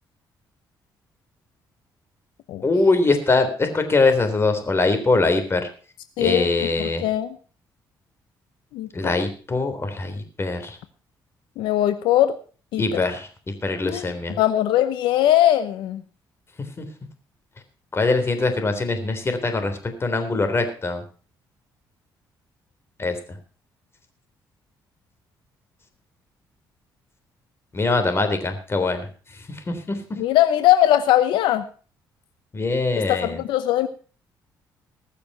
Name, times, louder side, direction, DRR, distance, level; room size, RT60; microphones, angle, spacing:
voice 1, 2.6-5.6 6.2-7.0 8.9-10.8 12.8-13.3 13.6-14.4 16.8-16.9 17.9-21.0 23.0-23.2 27.7-29.1 29.5-30.0 32.5-33.4, left 3 dB, 30° left, 7 dB, 3.6 m, -22 dB
voice 2, 6.2-6.7 7.0-7.4 8.7-9.2 11.6-12.3 12.7-13.0 13.8-16.0 30.2-31.6 33.1-33.9, left 13 dB, 90° left, 11 dB, 0.8 m, -20 dB
20.0 x 6.9 x 5.6 m, 0.38 s
cardioid pair, 85°, 8 cm